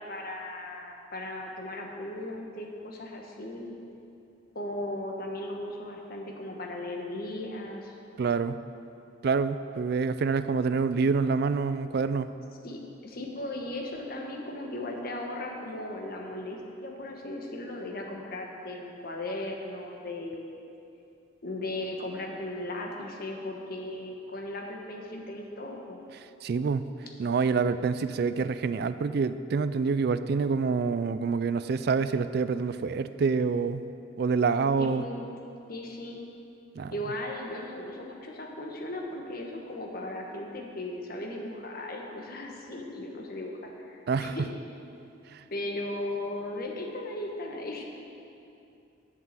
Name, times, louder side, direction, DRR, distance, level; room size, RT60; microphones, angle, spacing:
voice 1, 0.0-3.7 4.5-8.0 12.6-20.6 21.4-26.0 34.8-35.2 35.7-36.2 36.9-44.4 45.5-47.9, left 1 dB, 50° left, 1 dB, 1.3 m, -37 dB
voice 2, 8.2-8.6 9.2-12.3 26.4-26.8 27.2-33.9 34.2-35.0 36.7-36.9 44.1-44.4 45.3-45.4, right 5 dB, 55° right, 12 dB, 0.3 m, -27 dB
8.1 x 7.5 x 7.4 m, 2.7 s
head